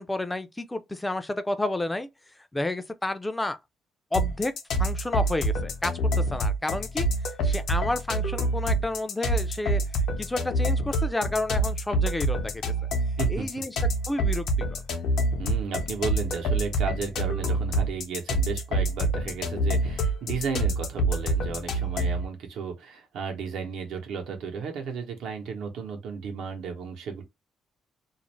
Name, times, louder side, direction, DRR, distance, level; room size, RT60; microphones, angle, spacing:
voice 1, 0.0-3.6 4.1-4.5 4.8-7.1 7.4-12.6 13.3-13.8 14.1-14.8, left 2 dB, 15° left, 0.4 m, -31 dB
sound 1, 4.1-22.3, right 1 dB, 70° left, 0.7 m, -26 dB
voice 2, 15.4-27.2, right 5 dB, 80° right, 0.8 m, -34 dB
2.5 x 2.0 x 3.0 m
cardioid pair, 90°, 0 cm